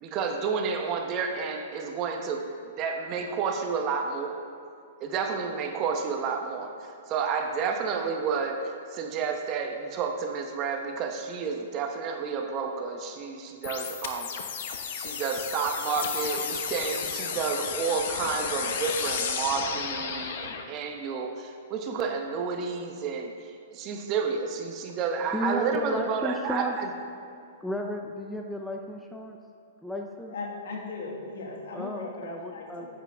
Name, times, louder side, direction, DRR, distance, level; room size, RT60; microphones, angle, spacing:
voice 1, 0.0-2.4 2.8-4.4 5.0-6.7 7.1-14.3 15.0-23.3 23.7-26.9, right 5 dB, 35° right, 3 dB, 1.0 m, -30 dB
sound 1, 13.6-20.6, left 7 dB, 60° left, 1.0 m, -33 dB
voice 2, 25.3-26.8 27.6-29.4 29.8-30.3 31.7-32.9, equal, 5° left, 1 dB, 0.6 m, -33 dB
voice 3, 30.3-32.9, left 3 dB, 75° left, 0 dB, 2.0 m, -38 dB
10.0 x 8.4 x 3.5 m, 2.5 s
hypercardioid pair, 140°, 0 cm